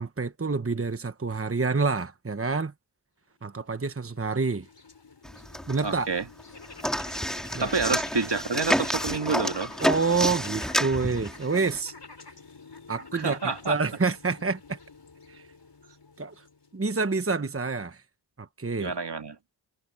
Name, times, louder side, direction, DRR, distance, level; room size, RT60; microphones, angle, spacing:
voice 1, 0.0-2.7 3.4-4.7 5.7-6.1 7.5-7.7 9.8-11.9 12.9-14.8 15.3-15.4 16.2-16.4 16.7-18.0 18.4-19.0, right 4 dB, 30° right, 1.1 m, -28 dB
sound 1, 3.5-16.9, left 4 dB, 65° left, 5.3 m, -47 dB
sound 2, 5.2-6.1 6.4-11.8, equal, ahead, 2.5 m, -29 dB
voice 2, 5.8-6.2 7.6-9.7 13.1-13.8 18.8-19.4, right 4 dB, 65° right, 2.0 m, -28 dB
wide cardioid pair, 60°, 45 cm